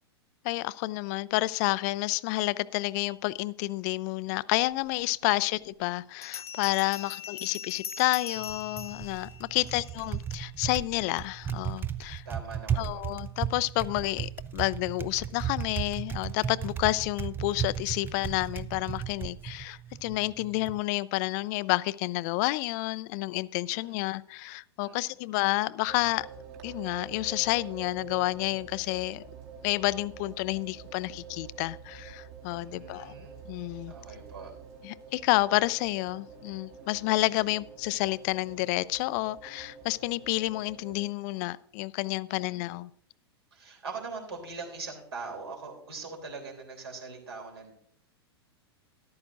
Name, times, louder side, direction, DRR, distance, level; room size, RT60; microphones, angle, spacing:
voice 1, 0.4-12.2 12.8-26.3 26.6-29.2 29.6-33.1 33.5-33.9 34.8-42.9, left 20 dB, 40° left, 0.4 m, -30 dB
Bell, 5.0-5.1 6.2-10.1, left 8 dB, 75° left, 0.7 m, -41 dB
Typing, 8.4-20.8, right 9 dB, 15° right, 0.5 m, -36 dB
voice 2, 12.2-13.0 23.7-24.1 24.8-25.2 32.5-33.3 33.9-34.5 42.3-42.7 43.5-47.7, right 4 dB, 75° right, 3.4 m, -42 dB
sound 1, 25.9-41.0, right 6 dB, 45° right, 2.0 m, -47 dB
13.5 x 11.5 x 2.6 m
figure-of-eight pair, 100°, 14 cm